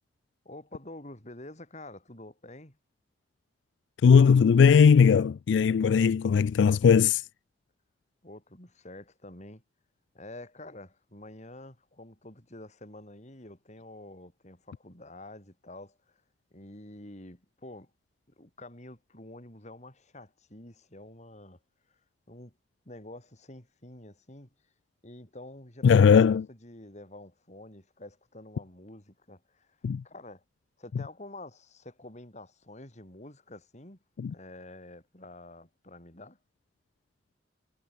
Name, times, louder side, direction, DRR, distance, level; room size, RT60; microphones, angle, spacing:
voice 1, 0.4-2.8 8.2-9.6 10.1-16.2 16.5-17.9 18.4-21.6 21.9-22.0 22.3-22.5 22.8-24.5 25.0-30.4 30.8-34.0 34.3-36.4, left 1 dB, 40° left, 5.1 m, -48 dB
voice 2, 4.0-7.3 25.8-26.4 29.8-30.0 34.2-34.3, left 6 dB, 85° left, 0.3 m, -19 dB
head